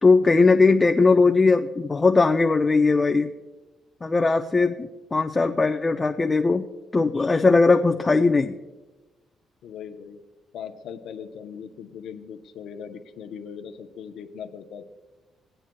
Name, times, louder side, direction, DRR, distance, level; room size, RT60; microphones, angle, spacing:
voice 1, 0.0-3.3 4.0-6.7 6.9-8.6, left 3 dB, 25° left, 5 dB, 0.4 m, -19 dB
voice 2, 9.6-10.2 10.5-14.9, left 7 dB, 75° left, 5 dB, 0.7 m, -39 dB
18.5 x 8.9 x 2.2 m, 1.1 s
cardioid pair, 105°, 0 cm